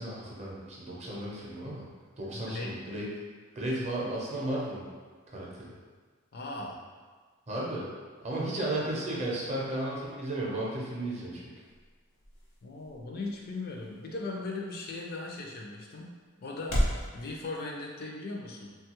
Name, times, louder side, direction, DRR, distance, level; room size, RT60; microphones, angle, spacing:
voice 1, 0.0-1.9 2.2-3.1 3.6-4.9 5.3-5.7 7.5-7.9 8.2-11.4, right 1 dB, 35° right, -4 dB, 0.6 m, -34 dB
voice 2, 2.3-2.7 6.3-6.8 12.6-16.1 16.4-18.8, left 2 dB, 50° left, -1 dB, 0.4 m, -38 dB
sound 1, 10.8-17.1, equal, 80° left, 0.8 m, -37 dB
3.1 x 2.3 x 2.9 m, 1.5 s
head